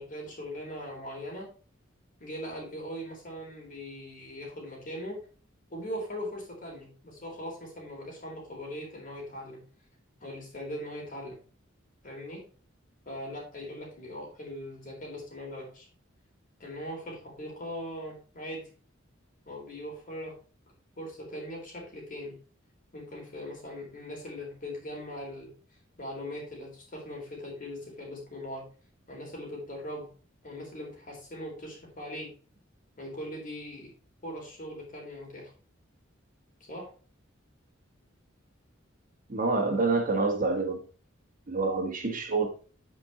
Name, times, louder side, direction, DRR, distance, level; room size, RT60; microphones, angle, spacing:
voice 1, 0.0-1.5 2.2-5.3 5.7-9.6 10.2-11.4 12.0-12.4 13.1-15.9 16.6-18.7 19.5-20.4 21.0-22.4 22.9-25.5 26.0-28.7 29.1-30.1 30.4-32.3 33.0-33.9 34.2-35.5 36.7-36.9, equal, 40° left, 3.9 m, -40 dB
voice 2, 39.3-40.8 41.5-42.5, right 3 dB, 40° right, 1.6 m, -27 dB
8.9 x 5.4 x 4.2 m
head